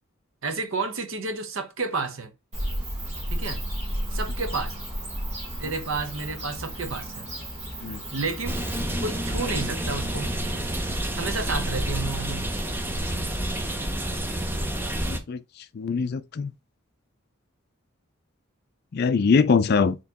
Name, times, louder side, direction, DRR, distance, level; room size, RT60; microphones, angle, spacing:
voice 1, 0.4-2.3 3.3-3.6 4.1-4.8 5.6-7.3 8.1-8.6 9.0-10.4 11.1-12.5, right 3 dB, 60° right, 0.8 m, -31 dB
Bird / Cricket, 2.5-8.8, equal, 30° right, 1.6 m, -33 dB
sound 1, 8.4-15.2, right 1 dB, 10° right, 0.5 m, -29 dB
sound 2, 8.5-12.5, left 1 dB, 5° left, 1.8 m, -41 dB
voice 2, 15.1-15.4 15.7-16.5 18.9-20.0, left 5 dB, 45° left, 0.4 m, -22 dB
4.4 x 3.0 x 2.8 m
head